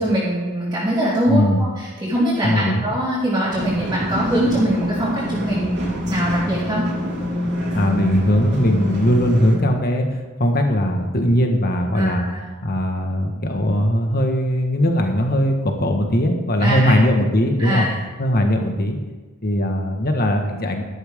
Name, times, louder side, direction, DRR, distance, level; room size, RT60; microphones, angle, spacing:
voice 1, 0.0-6.8 11.9-12.4 16.6-17.0 17.6-18.0, right 1 dB, 15° right, -12 dB, 3.2 m, -22 dB
voice 2, 1.3-1.6 2.4-2.9 7.7-12.3 12.6-17.9 18.2-19.0 19.4-20.8, equal, 45° left, 4 dB, 1.6 m, -19 dB
sound 1, 3.5-9.6, equal, 55° right, 3.2 m, -26 dB
13.0 x 12.5 x 3.7 m, 1.3 s
head